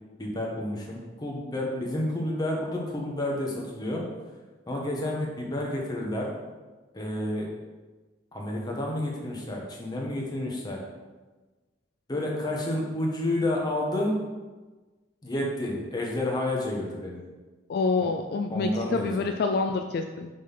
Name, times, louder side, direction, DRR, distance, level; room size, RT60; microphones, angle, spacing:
voice 1, 0.2-4.0 4.7-6.3 6.9-7.5 8.3-10.8 12.1-14.2 15.2-17.2 18.5-19.3, left 1 dB, 25° left, -1 dB, 1.2 m, -30 dB
voice 2, 17.7-20.3, left 4 dB, 60° left, 5 dB, 0.3 m, -27 dB
5.2 x 3.9 x 5.5 m, 1.3 s
head